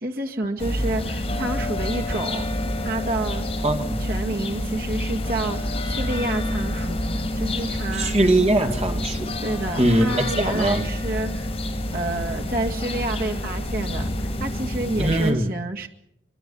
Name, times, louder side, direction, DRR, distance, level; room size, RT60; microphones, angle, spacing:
voice 1, 0.0-2.5 2.8-3.5 4.0-7.0 7.3-8.2 9.4-11.5 11.9-14.1 14.4-15.9, right 2 dB, 50° right, 2.0 m, -29 dB
sound 1, 0.6-15.3, left 1 dB, 30° left, 5.0 m, -28 dB
voice 2, 3.6-4.0 7.9-9.3 9.8-10.8 15.0-15.5, right 1 dB, 30° right, 2.2 m, -21 dB
24.5 x 23.0 x 5.6 m
head